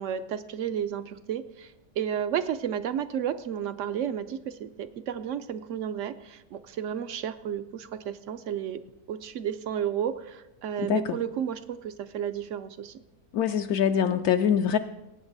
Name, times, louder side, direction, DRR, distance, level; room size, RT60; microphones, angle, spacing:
voice 1, 0.0-8.8 9.1-13.0, right 9 dB, 70° right, 11 dB, 0.7 m, -32 dB
voice 2, 13.3-14.8, left 8 dB, 75° left, 6 dB, 1.0 m, -24 dB
19.0 x 8.8 x 4.0 m, 0.95 s
omnidirectional pair, 1.7 m